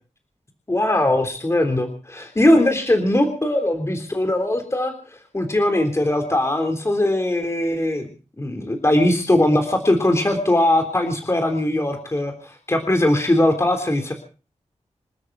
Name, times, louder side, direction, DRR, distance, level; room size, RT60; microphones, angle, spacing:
voice 1, 0.7-8.1 8.4-14.1, left 1 dB, 25° left, 5 dB, 3.5 m, -20 dB
27.5 x 13.0 x 4.0 m, 0.37 s
wide cardioid pair, 110°, 12 cm